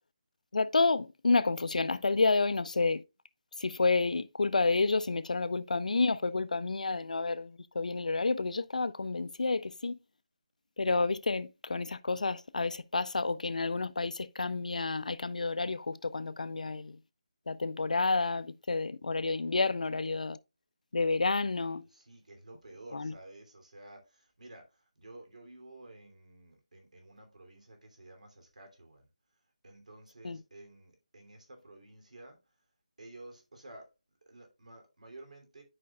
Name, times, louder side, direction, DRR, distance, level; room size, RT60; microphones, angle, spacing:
voice 1, 0.5-3.0 3.6-10.0 10.8-17.0 17.5-20.4 20.9-21.8 22.9-23.1 30.2-30.4, left 3 dB, 80° left, 0.6 m, -30 dB
voice 2, 21.8-29.1 29.6-32.5 33.0-33.9 34.3-35.6, right 2 dB, 70° right, 2.9 m, -52 dB
11.0 x 5.1 x 2.3 m
hypercardioid pair, 175°, 4 cm